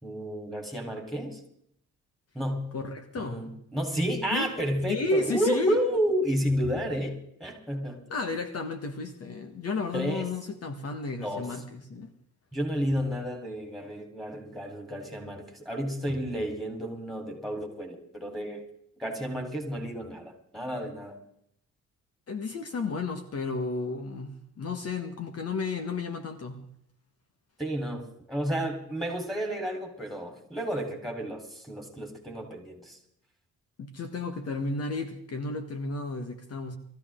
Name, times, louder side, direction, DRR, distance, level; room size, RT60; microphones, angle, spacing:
voice 1, 0.0-1.4 2.3-2.7 3.2-8.0 9.9-10.3 11.2-11.5 12.5-18.6 19.0-21.2 27.6-33.0, equal, ahead, 2 dB, 4.2 m, -31 dB
voice 2, 2.7-3.4 4.3-4.5 4.9-5.8 8.1-12.1 22.3-26.7 33.8-36.8, left 3 dB, 55° left, 6 dB, 1.7 m, -32 dB
22.0 x 14.5 x 3.8 m, 0.70 s
cardioid pair, 90°, 30 cm